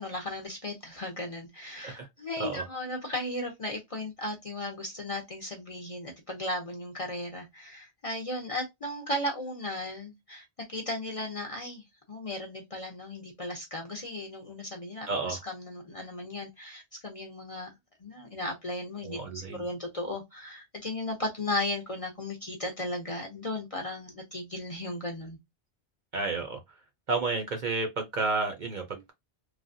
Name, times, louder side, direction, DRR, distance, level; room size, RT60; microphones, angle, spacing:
voice 1, 0.0-17.7 18.0-25.4, left 1 dB, 40° left, 0.6 m, -36 dB
voice 2, 15.1-15.4 19.0-19.6 26.1-26.6 27.1-29.1, right 3 dB, 50° right, 0.7 m, -31 dB
3.2 x 2.1 x 2.6 m
omnidirectional pair, 1.1 m